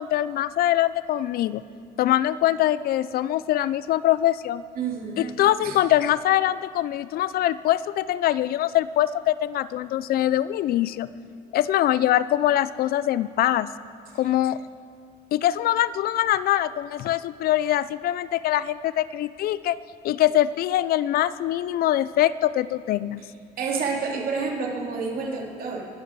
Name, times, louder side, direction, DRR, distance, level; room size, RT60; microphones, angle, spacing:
voice 1, 0.0-1.6 2.0-4.6 5.2-11.1 11.5-13.7 14.2-14.6 15.3-19.8 20.0-23.2, left 13 dB, 65° left, 17 dB, 0.4 m, -23 dB
voice 2, 4.8-5.3 5.6-5.8 23.6-25.9, right 5 dB, 60° right, -1 dB, 3.0 m, -29 dB
19.5 x 12.0 x 4.7 m, 2.4 s
cardioid pair, 110°, 17 cm